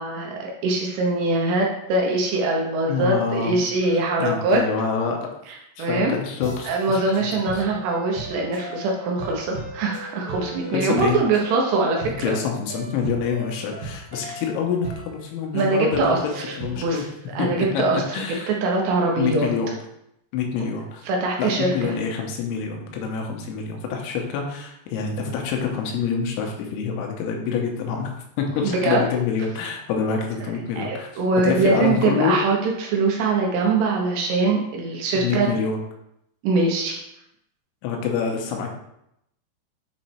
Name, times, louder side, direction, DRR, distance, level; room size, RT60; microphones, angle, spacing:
voice 1, 0.0-4.6 5.8-6.1 6.6-12.4 14.3-14.4 15.5-16.2 16.8-17.0 17.4-18.2 18.5-19.5 21.1-22.0 28.6-29.0 30.8-35.5 36.4-37.0, right 3 dB, 75° right, 0 dB, 2.7 m, -22 dB
voice 2, 2.9-3.6 3.9-5.3 5.8-7.6 10.7-11.2 12.2-17.0 17.4-18.5 19.2-19.7 20.3-21.1 21.4-28.1 28.4-31.1 31.4-32.4 35.1-35.8 37.8-38.7, left 6 dB, 90° left, 2 dB, 3.2 m, -26 dB
sound 1, 6.4-17.1, right 2 dB, 55° right, 2.0 m, -38 dB
7.6 x 3.1 x 4.3 m, 0.81 s
omnidirectional pair, 5.4 m